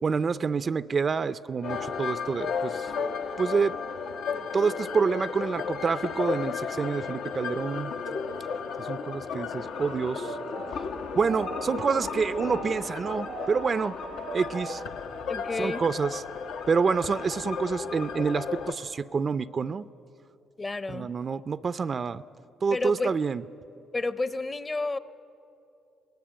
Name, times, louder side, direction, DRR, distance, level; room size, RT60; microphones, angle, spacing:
voice 1, 0.0-2.9 3.4-3.7 4.5-7.9 8.8-10.4 11.2-13.9 14.3-14.8 15.6-16.2 16.7-19.9 20.9-22.2 22.6-23.4, right 5 dB, 40° right, 14 dB, 0.5 m, -27 dB
sound 1, 1.6-18.7, left 5 dB, 85° left, 1.3 m, -34 dB
sound 2, 9.8-14.9, right 7 dB, 80° right, 1.0 m, -41 dB
voice 2, 15.3-15.8 20.6-21.1 22.7-23.1 23.9-25.0, left 3 dB, 25° left, 14 dB, 0.8 m, -30 dB
22.5 x 19.0 x 8.8 m, 2.8 s
cardioid pair, 90°, 0 cm